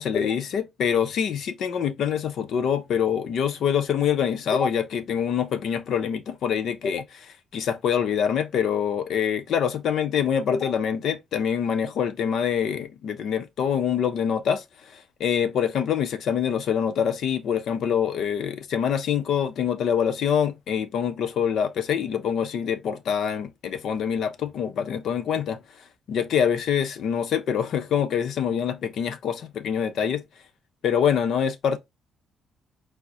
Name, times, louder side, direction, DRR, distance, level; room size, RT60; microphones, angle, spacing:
voice 1, 0.0-25.6 26.1-30.2 30.8-31.8, left 8 dB, 70° left, 0.6 m, -25 dB
4.8 x 2.0 x 4.1 m
cardioid pair, 90°, 0 cm